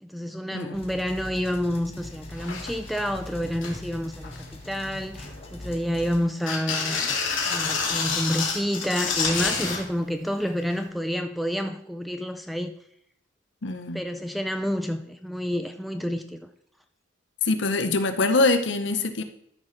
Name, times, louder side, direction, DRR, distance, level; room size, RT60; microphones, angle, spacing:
voice 1, 0.0-7.2 7.5-12.7 13.9-16.4, equal, ahead, 0.4 m, -29 dB
sound 1, 0.7-6.3, left 1 dB, 30° left, 1.3 m, -42 dB
sound 2, 2.0-2.1 2.3-3.0 3.4-3.8 4.2-4.7 5.2-6.0 6.4-9.8 10.9-11.0, left 5 dB, 80° left, 2.0 m, -28 dB
voice 2, 13.6-14.0 17.5-19.2, left 3 dB, 65° left, 0.7 m, -24 dB
13.0 x 5.7 x 3.2 m
head